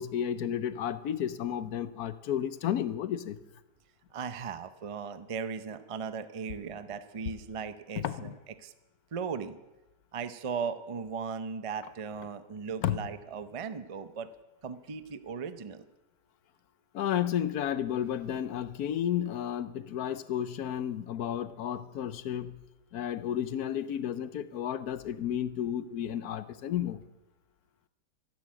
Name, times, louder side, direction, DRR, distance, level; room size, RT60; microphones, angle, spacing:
voice 1, 0.0-3.4 8.0-8.3 12.8-13.0 16.9-22.6 22.9-27.0, left 10 dB, 65° left, 13 dB, 1.2 m, -32 dB
voice 2, 4.1-8.3 8.6-8.7 9.1-9.6 10.1-14.3 14.6-15.8, right 6 dB, 45° right, 11 dB, 0.4 m, -37 dB
14.0 x 12.0 x 7.6 m, 1.1 s
omnidirectional pair, 1.8 m